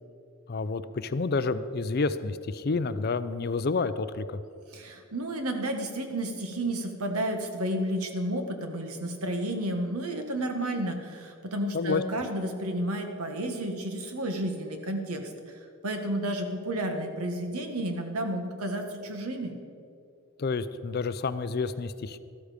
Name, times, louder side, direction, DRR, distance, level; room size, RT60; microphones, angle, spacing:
voice 1, 0.5-4.4 11.7-12.0 20.4-22.2, left 4 dB, 45° left, 13 dB, 0.5 m, -29 dB
voice 2, 4.7-19.5, right 1 dB, 85° right, 5 dB, 1.6 m, -31 dB
13.5 x 13.0 x 5.1 m, 2.5 s
head